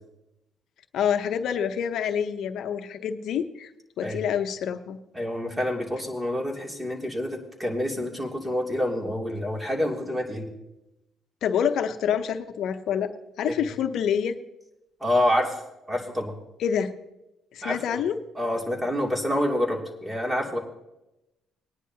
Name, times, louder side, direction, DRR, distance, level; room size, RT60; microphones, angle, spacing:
voice 1, 0.9-3.7 4.0-5.0 11.4-13.1 13.4-14.3 16.6-16.9 17.5-18.2, left 8 dB, 70° left, 8 dB, 0.7 m, -27 dB
voice 2, 5.1-10.5 13.5-13.7 15.0-15.6 15.9-16.3 17.6-18.0 18.3-20.6, left 1 dB, 15° right, 0 dB, 2.7 m, -27 dB
20.5 x 10.0 x 2.8 m, 0.93 s
cardioid pair, 90°, 0 cm